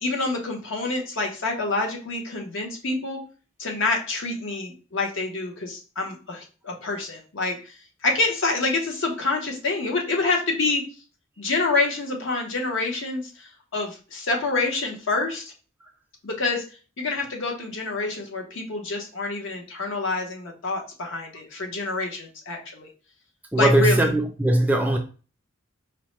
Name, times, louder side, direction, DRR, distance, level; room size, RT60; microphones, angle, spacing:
voice 1, 0.0-3.2 3.6-7.7 8.0-10.8 11.4-15.5 16.2-16.6 17.0-22.9 23.6-24.1, left 3 dB, 60° left, 0.8 m, -27 dB
voice 2, 23.5-25.0, right 1 dB, 10° right, 0.3 m, -20 dB
4.5 x 2.1 x 3.1 m
head